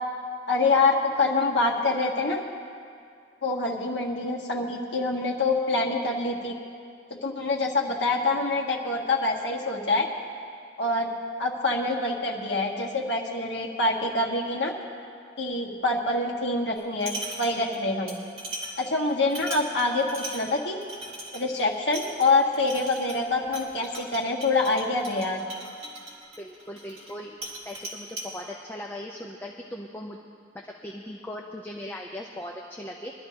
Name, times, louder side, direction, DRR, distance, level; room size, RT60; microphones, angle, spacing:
voice 1, 0.5-2.4 3.4-6.5 7.2-10.1 10.8-11.1 11.4-14.7 15.4-17.1 17.4-18.1 18.8-20.8 21.3-25.4, left 3 dB, 75° left, 0 dB, 1.7 m, -25 dB
sound 1, 16.8-17.8 18.1-27.1 27.4-28.3, right 1 dB, 35° right, 2.7 m, -39 dB
voice 2, 26.4-27.4 27.7-30.2 30.8-33.1, left 1 dB, 10° left, 0 dB, 0.7 m, -38 dB
23.5 x 12.5 x 2.9 m, 2.3 s
head